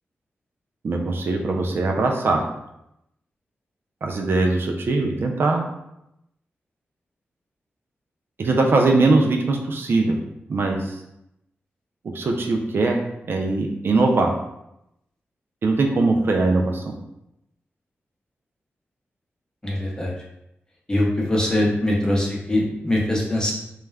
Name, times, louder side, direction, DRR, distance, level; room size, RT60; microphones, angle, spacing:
voice 1, 0.8-2.4 4.0-5.6 8.4-10.2 10.5-11.0 12.1-13.0 13.3-14.3 15.6-16.8, right 3 dB, 55° right, 1 dB, 0.3 m, -21 dB
voice 2, 19.6-20.1 20.9-23.5, left 1 dB, 15° left, -3 dB, 0.7 m, -22 dB
2.3 x 2.1 x 3.2 m, 0.83 s
wide cardioid pair, 85°, 4 cm